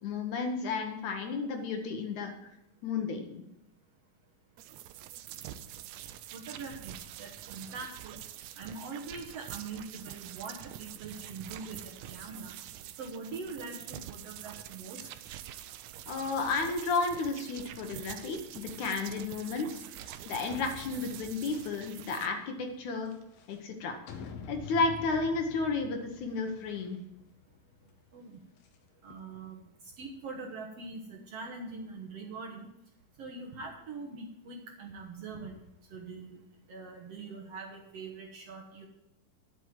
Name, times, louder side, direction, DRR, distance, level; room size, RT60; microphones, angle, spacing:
voice 1, 0.0-2.3 2.8-3.4 16.1-23.1 23.5-24.0 24.5-27.0, left 4 dB, 65° left, 5 dB, 2.4 m, -32 dB
sound 1, 4.6-22.3, right 12 dB, 90° right, 1.6 m, -46 dB
voice 2, 6.3-8.2 8.5-12.5 13.0-15.1 28.1-28.4 29.0-29.7 30.0-32.7 33.2-35.6 35.9-36.4 36.7-38.9, right 4 dB, 60° right, 0 dB, 1.8 m, -43 dB
sound 2, 15.9-29.2, left 5 dB, 90° left, 2.8 m, -50 dB
11.5 x 6.2 x 7.6 m, 0.89 s
omnidirectional pair, 4.0 m